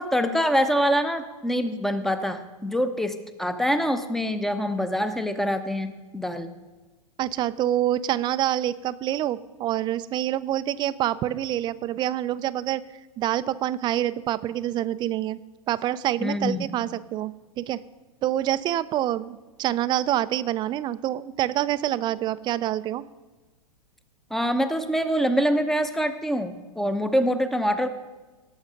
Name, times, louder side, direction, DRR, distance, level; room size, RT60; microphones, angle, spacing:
voice 1, 0.0-6.5 16.2-16.7 24.3-27.9, equal, ahead, 10 dB, 0.8 m, -25 dB
voice 2, 7.2-12.8 13.2-15.4 15.7-17.8 18.2-23.0, right 12 dB, 25° right, 15 dB, 0.4 m, -26 dB
17.5 x 7.1 x 5.2 m, 1.3 s
hypercardioid pair, 125°, 19 cm